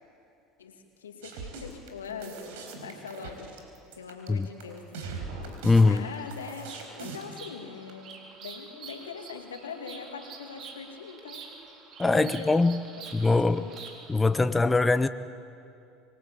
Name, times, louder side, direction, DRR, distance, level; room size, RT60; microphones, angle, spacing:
voice 1, 0.6-2.4 2.8-3.5 3.9-5.2 5.8-8.2 8.4-11.6 12.1-12.7 13.0-13.8, left 6 dB, 90° left, 2.4 m, -42 dB
sound 1, 1.2-7.3, right 4 dB, 75° right, 4.2 m, -40 dB
voice 2, 5.6-6.0 12.0-12.8 13.1-13.6 14.1-15.1, left 3 dB, 15° left, 0.8 m, -22 dB
Bird vocalization bird call bird song, 5.7-14.2, right 5 dB, 50° right, 3.8 m, -47 dB
26.0 x 19.5 x 8.7 m
hypercardioid pair, 75°, 0 cm